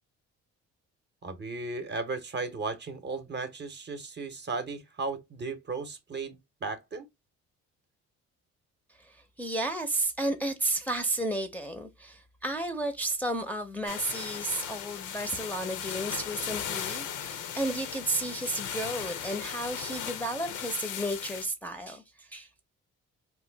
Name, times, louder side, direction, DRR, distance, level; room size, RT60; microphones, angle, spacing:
voice 1, 1.2-7.1, right 3 dB, 35° right, 0.8 m, -35 dB
voice 2, 9.0-22.6, right 1 dB, 5° left, 0.6 m, -33 dB
sound 1, 13.9-21.5, left 9 dB, 85° left, 0.7 m, -37 dB
2.9 x 2.2 x 3.3 m
cardioid pair, 90°, 30 cm